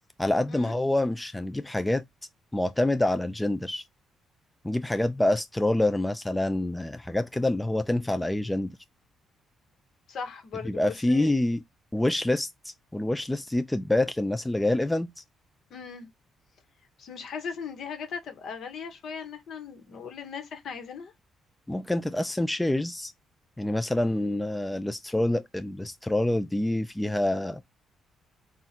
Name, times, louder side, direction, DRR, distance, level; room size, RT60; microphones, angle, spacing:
voice 1, 0.2-2.0 2.5-3.8 4.6-8.7 10.6-11.6 11.9-15.1 21.7-23.1 23.6-27.6, left 1 dB, 10° left, 0.3 m, -26 dB
voice 2, 10.1-11.3 15.7-16.1 17.0-21.1, left 6 dB, 65° left, 1.1 m, -38 dB
4.0 x 2.5 x 4.2 m
cardioid pair, 90°, 0 cm